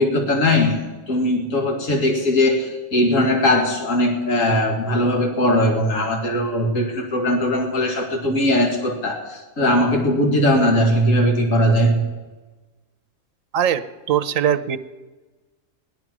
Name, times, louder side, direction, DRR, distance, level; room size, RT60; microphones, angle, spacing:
voice 1, 0.0-12.0, left 1 dB, 75° left, 2 dB, 2.4 m, -19 dB
voice 2, 13.5-14.8, right 9 dB, 85° right, 13 dB, 1.2 m, -21 dB
16.5 x 12.0 x 6.1 m, 1.2 s
omnidirectional pair, 1.4 m